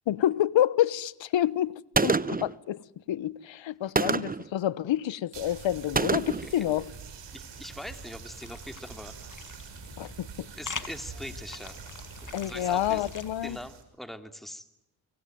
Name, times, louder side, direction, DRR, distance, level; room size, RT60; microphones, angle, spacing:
voice 1, 0.1-2.8 3.1-6.8 10.0-10.5 12.3-13.6, left 12 dB, 70° left, 1.1 m, -28 dB
Gunshot gunfire, 1.9-2.5 4.0-4.5 6.0-6.5, right 4 dB, 20° right, 1.0 m, -26 dB
sound 1, 5.3-13.8, right 6 dB, 65° right, 6.6 m, -45 dB
voice 2, 7.3-9.1 10.6-11.8 12.4-13.1 13.4-14.7, equal, ahead, 2.9 m, -42 dB
sound 2, 7.8-13.7, left 5 dB, 40° left, 2.5 m, -44 dB
25.0 x 24.0 x 9.4 m
cardioid pair, 60°, 47 cm